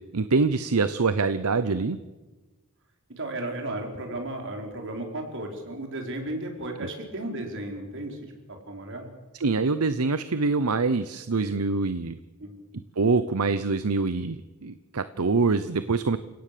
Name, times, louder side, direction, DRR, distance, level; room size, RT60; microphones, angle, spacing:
voice 1, 0.1-2.0 6.8-6.9 9.3-12.2 13.0-16.2, right 4 dB, 75° right, 13 dB, 0.8 m, -25 dB
voice 2, 3.2-8.3 8.7-9.1 12.4-12.5, right 1 dB, 60° right, 2 dB, 4.6 m, -34 dB
29.5 x 17.5 x 6.9 m, 1.2 s
head